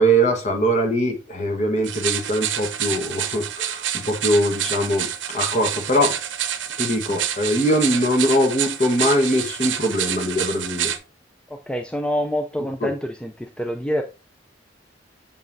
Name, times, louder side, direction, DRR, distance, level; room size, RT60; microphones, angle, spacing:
voice 1, 0.0-6.2 6.8-10.9 12.8-12.9, equal, 40° left, 1.3 m, -22 dB
sound 1, 1.8-11.0, right 10 dB, 85° right, 0.7 m, -28 dB
voice 2, 11.5-13.3 13.6-14.0, equal, 5° left, 0.4 m, -26 dB
7.3 x 5.4 x 2.6 m
head